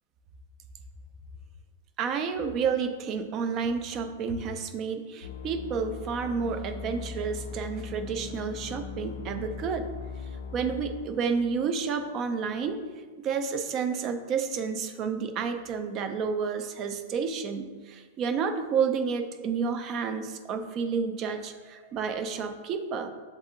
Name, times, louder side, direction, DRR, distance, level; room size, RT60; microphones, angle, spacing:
voice 1, 2.0-9.9 10.5-12.8 13.2-23.1, right 6 dB, 25° right, 8 dB, 0.3 m, -30 dB
sound 1, 5.2-12.7, left 6 dB, 70° left, 0.3 m, -40 dB
7.8 x 2.7 x 2.5 m, 1.4 s
supercardioid pair, 170°, 0 cm